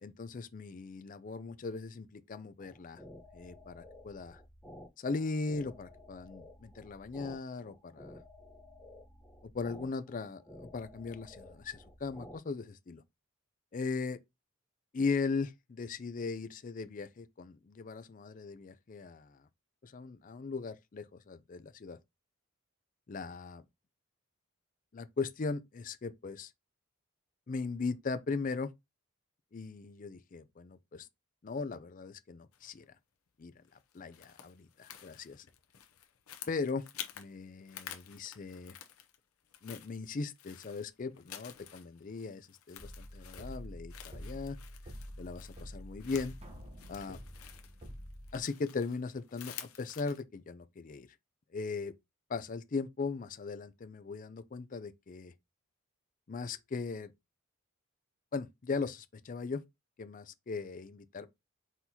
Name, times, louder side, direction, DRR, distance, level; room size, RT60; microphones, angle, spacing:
voice 1, 0.0-3.0 3.3-4.4 5.0-8.2 9.5-13.0 13.7-14.2 14.9-19.4 19.8-22.0 23.1-23.6 24.9-26.5 27.5-28.7 29.5-31.1 31.4-32.9 33.4-33.5 33.9-35.4 36.5-36.9 37.2-38.8 39.6-44.6 45.2-46.3 46.9-47.2 48.3-51.1 51.5-51.9 52.3-55.3 56.3-57.1 58.3-59.6 60.0-61.3, left 4 dB, 40° left, 0.4 m, -38 dB
sound 1, 2.6-12.4, left 1 dB, ahead, 1.0 m, -53 dB
sound 2, 32.5-32.9 33.6-37.3 37.6-39.2 39.5-50.2, left 10 dB, 90° left, 0.7 m, -50 dB
sound 3, 42.8-48.4, equal, 30° right, 0.9 m, -47 dB
4.4 x 3.9 x 2.8 m
head